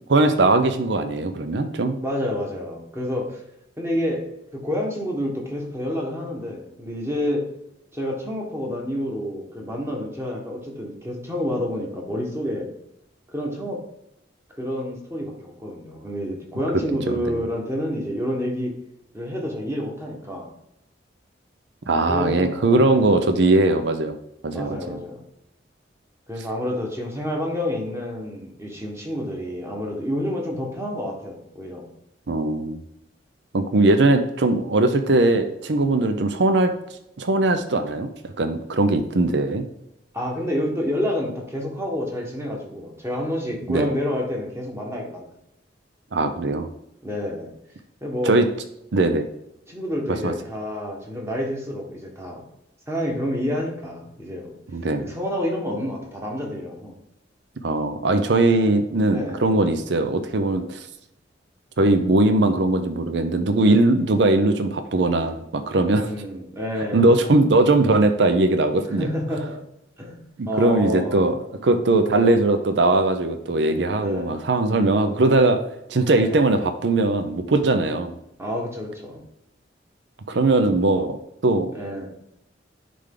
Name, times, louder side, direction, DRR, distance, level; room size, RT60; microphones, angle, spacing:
voice 1, 0.1-2.0 17.1-17.4 21.9-24.2 24.4-25.0 32.3-32.8 33.5-36.7 37.2-38.1 38.4-39.6 43.7-43.9 46.1-46.7 48.2-48.5 48.9-49.3 50.2-50.3 54.7-55.1 57.6-60.9 61.8-66.1 66.9-69.1 70.4-75.6 75.9-78.1 80.3-81.2 81.4-81.7, right 2 dB, 70° right, 8 dB, 0.6 m, -20 dB
voice 2, 2.0-3.4 3.8-4.2 4.6-7.5 7.9-12.7 13.3-13.8 14.6-18.7 19.1-20.5 22.1-23.2 24.5-25.2 26.3-31.8 40.1-45.3 47.0-47.5 48.0-48.4 49.7-52.4 52.9-54.5 55.0-56.9 59.1-59.5 65.9-67.1 69.0-69.6 70.0-71.2 74.0-74.3 76.1-76.6 78.4-79.2 81.7-82.1, equal, 15° right, -1 dB, 1.4 m, -29 dB
10.0 x 3.4 x 3.8 m, 0.81 s
head